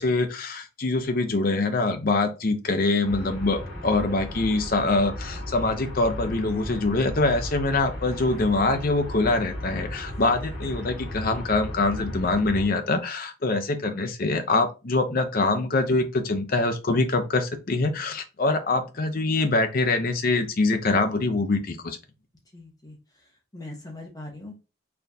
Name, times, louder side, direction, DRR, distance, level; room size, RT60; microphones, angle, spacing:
voice 1, 0.0-22.0, left 3 dB, 45° left, 6 dB, 0.6 m, -24 dB
sound 1, 3.0-12.7, left 1 dB, 85° left, 2.3 m, -35 dB
voice 2, 22.5-23.3 23.5-24.5, left 2 dB, 20° left, 0 dB, 1.0 m, -41 dB
4.3 x 3.3 x 2.7 m, 0.29 s
head